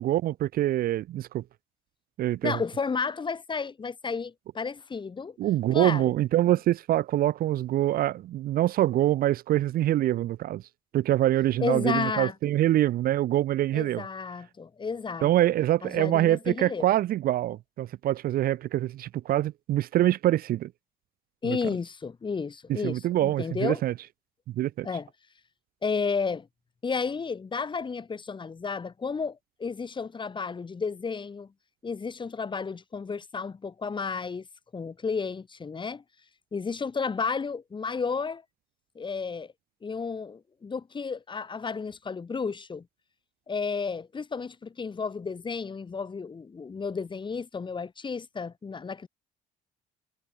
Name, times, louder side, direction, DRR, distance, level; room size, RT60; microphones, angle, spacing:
voice 1, 0.0-1.4 2.2-2.6 5.4-10.6 10.9-14.0 15.2-20.7 21.4-21.6 22.8-23.9 24.5-24.9, right 13 dB, 60° right, 0.6 m, -25 dB
voice 2, 2.4-5.4 5.7-6.1 11.6-12.3 13.7-15.3 15.8-16.9 21.4-23.8 24.8-25.1 25.8-26.5 26.8-31.5 31.8-34.5 34.7-36.0 36.5-38.4 38.9-39.5 39.8-42.9 43.5-49.1, left 5 dB, 30° left, 4.6 m, -32 dB
cardioid pair, 110°, 17 cm